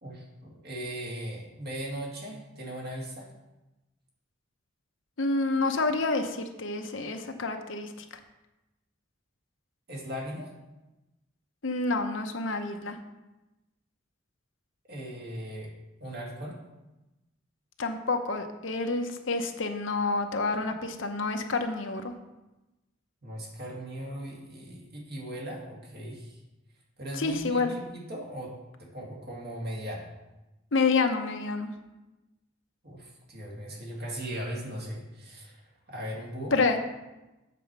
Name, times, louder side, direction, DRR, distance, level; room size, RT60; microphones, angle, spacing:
voice 1, 0.0-3.3 9.9-10.5 14.9-15.7 16.0-16.6 23.2-26.4 27.0-28.5 28.8-30.1 32.8-35.6 35.9-36.5, equal, 55° right, -2 dB, 2.0 m, -38 dB
voice 2, 5.2-7.9 11.6-13.0 17.8-22.1 27.1-27.7 30.7-31.7 36.5-36.8, left 3 dB, 70° left, 6 dB, 0.8 m, -28 dB
7.7 x 4.5 x 6.7 m, 1.0 s
head